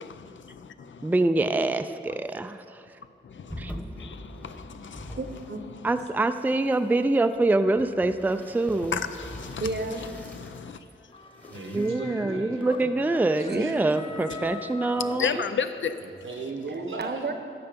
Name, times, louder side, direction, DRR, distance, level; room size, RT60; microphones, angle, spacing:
voice 1, 0.0-1.1 3.2-5.2 8.9-9.7 10.2-10.8 15.2-16.0, left 7 dB, 75° left, 0.5 m, -33 dB
voice 2, 1.0-2.8 3.6-3.7 5.8-9.0 11.7-15.3, right 2 dB, 10° right, 0.4 m, -25 dB
sound 1, 3.5-5.7 6.0-10.6 11.2-11.9, equal, 5° left, 1.0 m, -43 dB
voice 3, 5.2-5.6 9.6-10.1 10.7-10.8 13.5-14.5 17.0-17.3, right 3 dB, 60° right, 1.0 m, -33 dB
sound 2, 11.1-15.9, left 4 dB, 25° left, 0.7 m, -42 dB
voice 4, 11.4-13.0 13.4-13.7 14.9-15.4 16.0-17.2, right 3 dB, 85° right, 1.2 m, -37 dB
13.5 x 5.9 x 5.2 m
wide cardioid pair, 65°, 20 cm